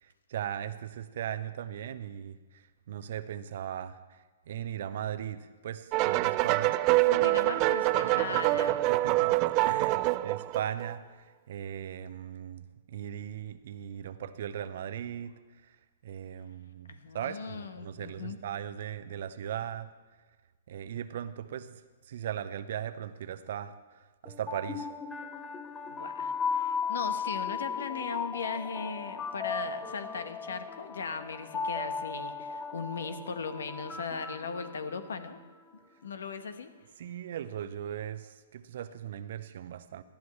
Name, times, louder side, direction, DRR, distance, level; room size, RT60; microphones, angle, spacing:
voice 1, 0.0-6.8 8.0-8.6 8.9-15.8 16.0-19.9 20.7-24.9 37.0-40.0, right 10 dB, 60° right, 12 dB, 0.8 m, -38 dB
sound 1, 5.9-10.9, right 19 dB, 35° right, 0.4 m, -26 dB
voice 2, 7.0-8.8 16.9-18.4 25.9-35.4 36.0-36.7, left 5 dB, 75° left, 9 dB, 1.2 m, -38 dB
sound 2, 24.3-35.3, left 5 dB, 15° left, 0.9 m, -36 dB
19.0 x 12.5 x 3.2 m, 1.3 s
hypercardioid pair, 125°, 0 cm